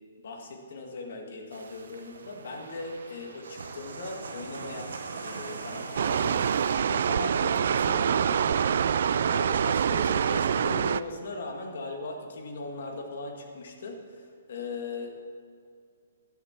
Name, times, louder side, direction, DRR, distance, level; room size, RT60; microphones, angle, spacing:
voice 1, 0.2-4.9 5.2-8.7 9.0-15.2, left 3 dB, 50° left, 2 dB, 1.9 m, -39 dB
sound 1, 1.5-6.7, right 4 dB, 70° right, 1.2 m, -41 dB
sound 2, 6.0-11.0, right 7 dB, 45° right, 0.3 m, -25 dB
11.5 x 10.5 x 5.9 m, 2.2 s
hypercardioid pair, 180°, 0 cm